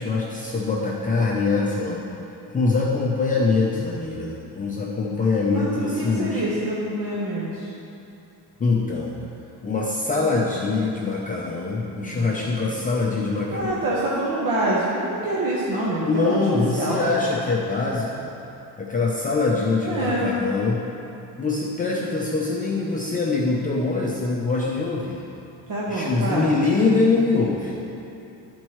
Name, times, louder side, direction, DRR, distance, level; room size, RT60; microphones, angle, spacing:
voice 1, 0.0-2.1 2.5-6.4 8.6-9.1 9.6-13.7 16.0-18.3 18.8-20.8 21.4-25.2 25.9-27.8, left 3 dB, 20° left, -5 dB, 0.5 m, -23 dB
voice 2, 5.5-7.7 12.0-12.3 13.5-17.0 19.8-20.3 25.7-26.6, right 1 dB, 60° right, -7 dB, 1.1 m, -26 dB
12.0 x 4.4 x 3.1 m, 2.9 s
cardioid pair, 165°, 40 cm